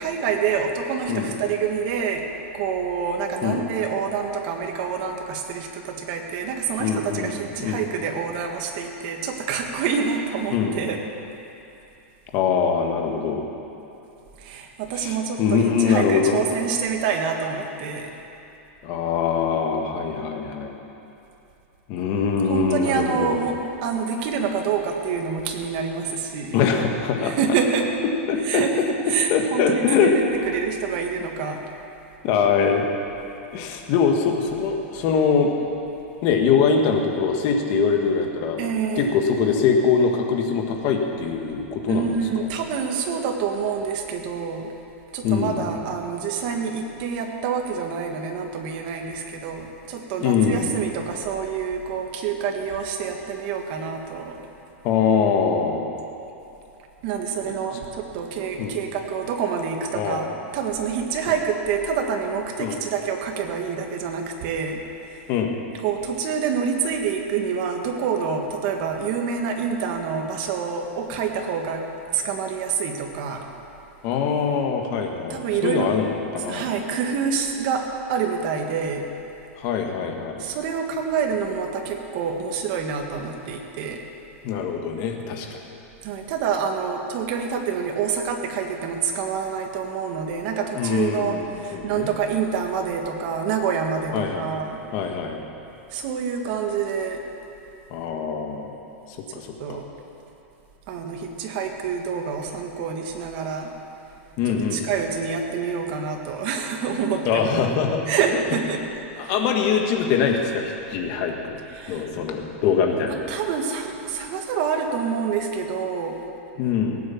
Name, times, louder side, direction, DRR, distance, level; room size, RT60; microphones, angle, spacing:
voice 1, 0.0-2.3 2.5-11.0 14.4-18.1 22.5-26.6 27.2-27.9 28.4-31.6 38.6-39.1 41.9-44.7 45.1-54.4 57.0-65.2 65.8-71.9 72.1-73.5 75.3-75.9 76.5-79.0 80.4-84.1 86.0-94.8 95.9-97.2 99.6-99.9 100.9-103.7 104.4-107.5 108.1-108.8 111.7-112.1 113.1-116.2, right 6 dB, 40° right, 3 dB, 1.7 m, -27 dB
voice 2, 6.8-7.8 10.5-10.8 12.3-13.5 14.9-16.4 18.8-20.8 21.9-23.4 26.5-27.3 28.3-30.1 32.2-32.8 33.5-35.5 36.2-38.6 38.9-42.1 45.2-45.7 50.2-50.7 54.8-55.9 58.6-58.7 59.9-60.3 62.6-62.8 65.3-65.5 74.0-76.7 79.6-80.4 84.4-85.6 90.7-92.1 94.1-94.5 94.9-95.4 97.9-98.8 99.3-99.8 104.4-104.8 107.2-108.0 108.3-108.4 109.2-111.6 111.9-113.3 116.6-117.0, left 6 dB, 35° left, 3 dB, 1.6 m, -23 dB
18.0 x 9.4 x 7.2 m, 2.8 s
supercardioid pair, 165°, 7 cm